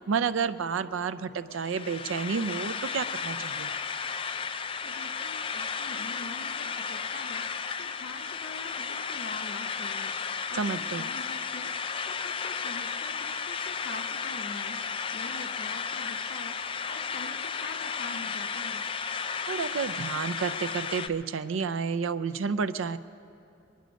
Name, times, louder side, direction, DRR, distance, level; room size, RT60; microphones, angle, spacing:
voice 1, 0.0-3.7 10.5-11.1 19.5-23.0, right 5 dB, 80° right, 13 dB, 0.5 m, -30 dB
sound 1, 1.5-21.1, left 6 dB, 25° left, 0.3 m, -34 dB
voice 2, 4.8-7.5 7.8-18.8, left 3 dB, 55° left, 8 dB, 0.7 m, -44 dB
23.0 x 10.5 x 5.1 m, 2.6 s
head